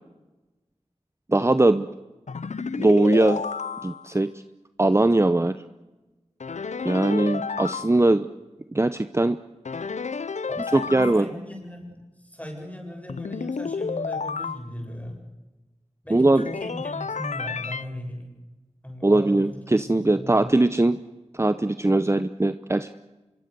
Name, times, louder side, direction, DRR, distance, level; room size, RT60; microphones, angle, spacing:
voice 1, 1.3-1.9 2.8-3.4 3.8-4.3 4.8-5.6 6.8-8.3 8.7-9.4 10.7-11.3 16.1-16.4 19.0-21.0 21.3-23.0, right 2 dB, 25° right, 11 dB, 0.8 m, -20 dB
sound 1, 2.3-4.2 6.4-7.9 9.6-11.2 13.1-14.6 16.4-17.8, left 5 dB, 90° left, 0.7 m, -31 dB
voice 2, 10.5-15.1 16.0-18.3 18.8-20.6, equal, 10° left, 2 dB, 8.0 m, -38 dB
25.5 x 22.5 x 6.9 m, 1.1 s
wide cardioid pair, 50°, 12 cm